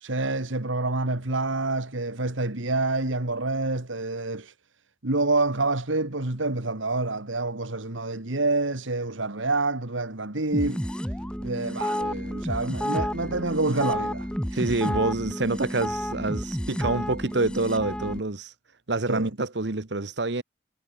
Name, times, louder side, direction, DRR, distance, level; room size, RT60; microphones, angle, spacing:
voice 1, 0.0-4.5 5.0-10.8 11.4-14.3 19.1-19.3, right 2 dB, 85° right, 2.3 m, -27 dB
sound 1, 10.5-18.2, equal, 5° left, 2.6 m, -31 dB
voice 2, 14.5-18.5 18.9-20.4, right 2 dB, 60° right, 1.2 m, -27 dB
head